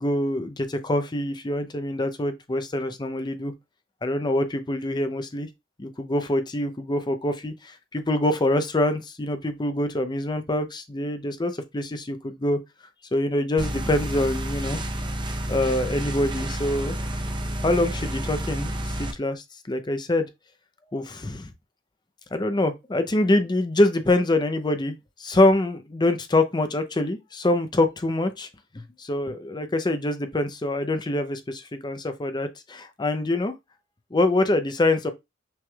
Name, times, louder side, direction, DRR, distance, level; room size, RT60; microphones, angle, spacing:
voice 1, 0.0-3.5 4.0-5.5 5.8-12.6 13.1-14.8 15.5-16.9 17.6-20.3 20.9-21.5 22.3-24.9 25.2-28.5 29.0-33.5 34.1-35.1, left 1 dB, 20° left, 0.5 m, -25 dB
sound 1, 13.6-19.1, right 1 dB, 25° right, 0.7 m, -30 dB
6.1 x 3.3 x 2.3 m
head